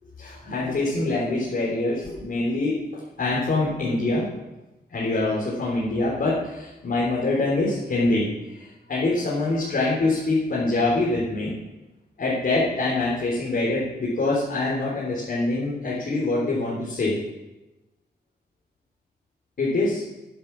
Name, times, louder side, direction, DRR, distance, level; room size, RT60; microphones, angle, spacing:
voice 1, 0.2-4.3 4.9-8.3 8.5-11.5 12.2-17.2 19.6-20.0, left 2 dB, 60° left, -6 dB, 3.7 m, -24 dB
11.0 x 10.5 x 6.1 m, 1.0 s
wide cardioid pair, 135°, 17 cm